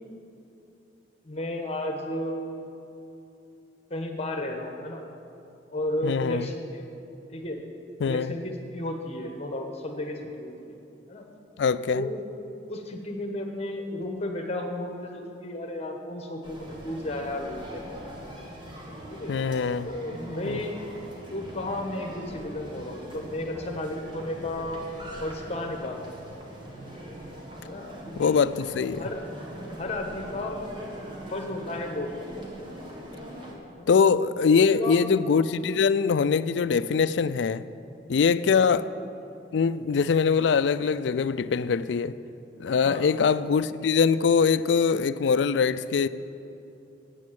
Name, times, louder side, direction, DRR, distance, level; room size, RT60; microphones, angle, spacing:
voice 1, 1.2-2.6 3.9-5.0 5.7-6.8 7.3-7.6 8.0-10.8 11.1-11.3 11.9-12.2 12.7-17.9 19.1-19.4 19.8-20.8 21.3-24.8 25.2-26.1 27.6-28.4 29.0-29.2 29.8-30.6 31.3-32.4 33.8-33.9 34.6-35.0 38.5-38.9 42.8-43.1, left 1 dB, 35° left, 1.3 m, -33 dB
voice 2, 6.0-6.5 8.0-8.3 11.6-12.1 19.3-19.9 20.4-20.6 28.2-29.1 33.9-37.6 38.1-38.9 39.5-42.2 42.6-46.1, left 5 dB, 70° left, 0.4 m, -23 dB
sound 1, 16.4-33.6, equal, 25° right, 1.7 m, -42 dB
9.6 x 8.4 x 8.6 m
head